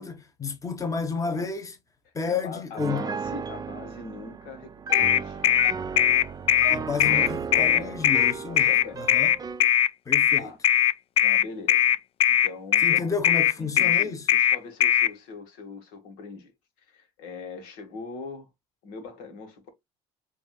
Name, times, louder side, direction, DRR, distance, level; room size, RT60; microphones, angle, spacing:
voice 1, 0.0-1.7 2.1-3.1 6.7-9.3 10.1-10.5 12.8-14.3, left 5 dB, 20° left, 1.2 m, -31 dB
voice 2, 2.3-5.8 7.5-8.1 8.4-9.2 10.3-10.6 11.2-12.0 12.3-13.2 13.6-16.5 16.9-18.5 18.8-19.7, left 4 dB, 75° left, 1.7 m, -41 dB
Piano, 2.8-9.7, right 6 dB, 25° right, 0.6 m, -35 dB
sound 1, 4.9-15.1, left 10 dB, 40° left, 0.4 m, -20 dB
7.0 x 2.7 x 2.3 m
supercardioid pair, 80°, 15 cm